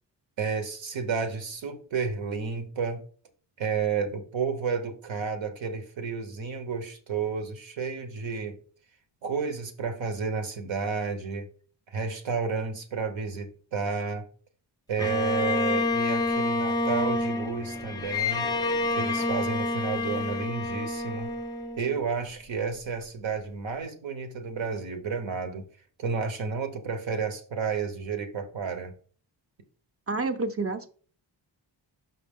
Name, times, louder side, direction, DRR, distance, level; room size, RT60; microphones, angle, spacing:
voice 1, 0.4-3.0 3.6-8.6 9.2-11.5 11.9-14.2 14.9-18.5 18.9-21.3 21.8-25.7 26.0-28.9, right 5 dB, 75° right, 1.2 m, -31 dB
Bowed string instrument, 15.0-22.2, left 2 dB, 10° left, 0.5 m, -28 dB
voice 2, 30.1-30.9, right 3 dB, 30° right, 0.6 m, -29 dB
5.9 x 5.8 x 3.7 m
wide cardioid pair, 150°, 46 cm